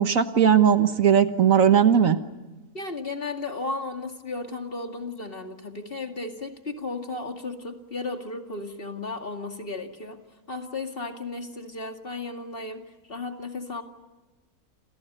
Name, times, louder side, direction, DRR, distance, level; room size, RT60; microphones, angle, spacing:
voice 1, 0.0-2.2, right 8 dB, 65° right, 9 dB, 1.6 m, -18 dB
voice 2, 2.7-10.2 10.5-13.8, left 3 dB, 40° left, 4 dB, 2.4 m, -34 dB
29.0 x 28.5 x 5.6 m, 1.1 s
omnidirectional pair, 1.6 m